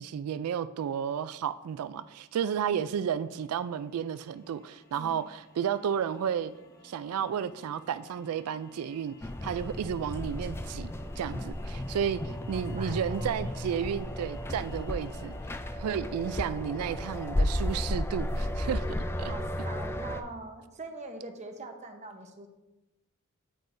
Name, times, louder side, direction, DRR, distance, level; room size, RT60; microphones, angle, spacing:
voice 1, 0.0-6.5 6.8-9.1 9.4-10.9 11.2-15.4 15.8-18.8 19.2-19.3, right 8 dB, 90° right, 13 dB, 0.3 m, -32 dB
sound 1, 1.2-15.6, left 3 dB, 45° left, 1.0 m, -57 dB
sound 2, 9.2-20.2, left 1 dB, 10° left, 0.3 m, -33 dB
voice 2, 12.5-13.4 19.2-22.5, right 2 dB, 35° right, 4 dB, 0.9 m, -43 dB
9.1 x 7.9 x 2.6 m, 1.0 s
head